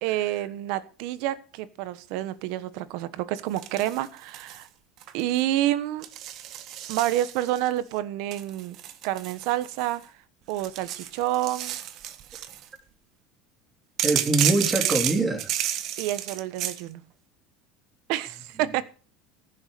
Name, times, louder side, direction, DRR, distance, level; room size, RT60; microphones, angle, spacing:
voice 1, 0.0-4.7 5.1-6.1 6.9-8.8 9.0-10.0 10.5-11.8 16.0-17.0 18.1-18.8, right 14 dB, 70° right, 15 dB, 1.2 m, -28 dB
sound 1, 3.6-4.6 5.0-5.4 6.0-7.7 8.3-10.0 10.5-12.7 14.0-16.8, right 11 dB, 50° right, 1.4 m, -31 dB
voice 2, 14.0-15.5, right 2 dB, 10° right, 4 dB, 2.9 m, -23 dB
15.5 x 7.2 x 6.7 m, 0.38 s
supercardioid pair, 135°, 0 cm